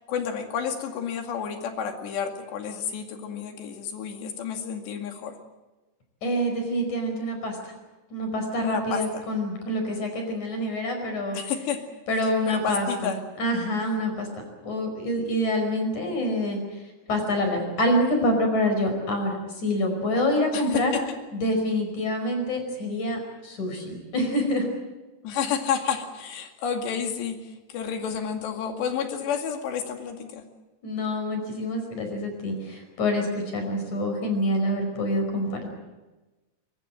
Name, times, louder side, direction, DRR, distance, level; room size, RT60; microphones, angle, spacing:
voice 1, 0.1-5.3 8.6-9.2 11.3-11.8 12.5-13.2 20.5-21.0 25.2-30.4, left 7 dB, 75° left, 4 dB, 4.4 m, -30 dB
voice 2, 6.2-7.6 8.1-11.4 12.1-13.1 13.4-14.3 14.6-16.6 17.1-21.0 21.3-24.7 30.8-35.7, left 1 dB, 45° left, 4 dB, 6.4 m, -26 dB
23.0 x 22.5 x 7.7 m, 1.1 s
omnidirectional pair, 5.0 m